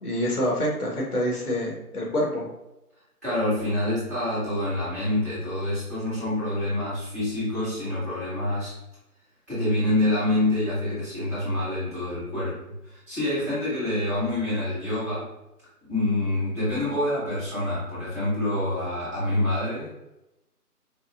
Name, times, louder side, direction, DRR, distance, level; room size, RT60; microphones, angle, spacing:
voice 1, 0.0-2.4, equal, 70° left, -2 dB, 1.4 m, -26 dB
voice 2, 3.2-8.7 9.5-15.3 15.9-19.9, left 1 dB, 10° right, -13 dB, 1.2 m, -26 dB
4.8 x 2.3 x 2.4 m, 0.92 s
figure-of-eight pair, 165°, 47 cm